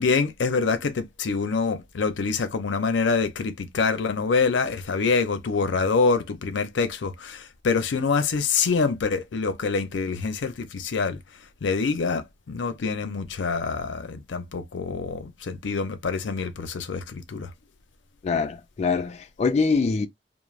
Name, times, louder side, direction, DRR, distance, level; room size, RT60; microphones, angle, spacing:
voice 1, 0.0-11.2 11.6-17.5, left 4 dB, 90° left, 0.5 m, -25 dB
voice 2, 18.2-20.1, left 4 dB, 40° left, 0.3 m, -24 dB
2.4 x 2.0 x 3.1 m
head